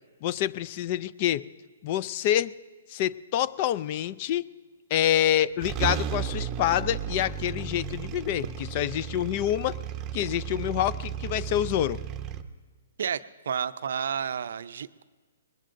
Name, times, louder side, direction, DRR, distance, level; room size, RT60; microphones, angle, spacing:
voice 1, 0.2-1.4 1.8-2.5 2.9-4.4 4.9-9.8 10.1-12.0, left 12 dB, 35° left, 19 dB, 0.3 m, -27 dB
sound 1, 5.3-5.4 5.6-12.4, right 8 dB, 20° right, 0.7 m, -34 dB
voice 2, 13.0-15.0, right 7 dB, 70° right, 13 dB, 0.5 m, -31 dB
21.0 x 20.0 x 2.6 m, 1.4 s
hypercardioid pair, 150°, 0 cm